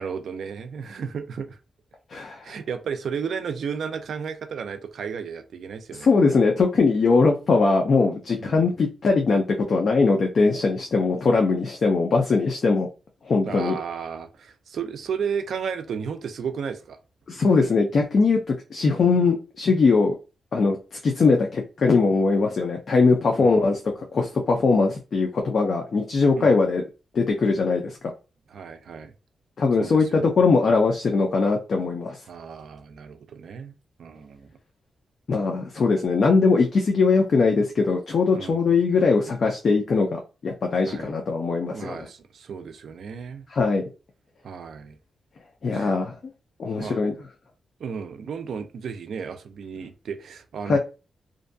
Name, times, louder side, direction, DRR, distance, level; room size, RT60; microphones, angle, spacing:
voice 1, 0.0-1.6 2.4-6.1 8.4-8.8 13.4-17.0 23.4-23.6 26.4-26.6 28.5-29.1 29.8-30.3 32.3-33.7 34.0-34.6 38.3-38.6 40.9-41.1 41.7-43.5 44.4-45.0 45.7-46.0 46.8-47.0 47.8-50.8, right 6 dB, 70° right, 0.4 m, -33 dB
voice 2, 2.1-2.5 6.0-12.9 13.2-13.8 17.3-18.4 18.7-20.2 20.5-23.8 24.1-26.8 27.1-28.0 29.6-32.2 35.3-42.1 43.5-43.8 45.6-46.2 46.6-47.1 50.7-50.8, left 4 dB, 50° left, 0.4 m, -21 dB
2.5 x 2.2 x 2.6 m
wide cardioid pair, 130°, 0 cm